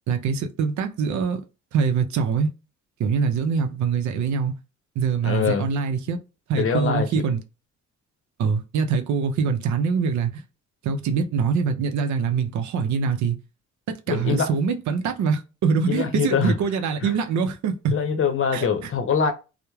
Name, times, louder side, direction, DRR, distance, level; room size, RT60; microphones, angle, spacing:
voice 1, 0.1-1.4 1.7-2.5 3.0-4.5 5.0-6.2 6.5-7.4 8.4-10.4 10.8-13.4 13.9-17.9 18.5-18.7, right 6 dB, 70° right, 0.6 m, -24 dB
voice 2, 5.2-5.7 6.6-7.1 14.1-14.5 15.9-16.5 17.0-17.1 17.9-19.3, left 6 dB, 45° left, 0.7 m, -23 dB
3.0 x 2.1 x 2.3 m
cardioid pair, 90°, 30 cm